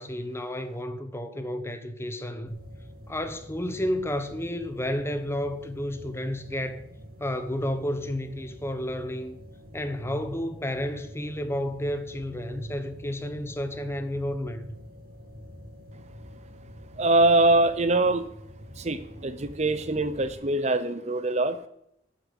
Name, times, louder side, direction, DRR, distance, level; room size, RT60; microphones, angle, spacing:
voice 1, 0.0-2.6 3.1-6.8 7.2-9.4 9.7-14.7, left 1 dB, 15° left, 1.1 m, -31 dB
sound 1, 2.5-20.3, equal, 50° right, 2.3 m, -46 dB
voice 2, 17.0-18.3 18.8-21.6, right 2 dB, 35° right, 0.7 m, -23 dB
12.5 x 7.1 x 7.7 m
head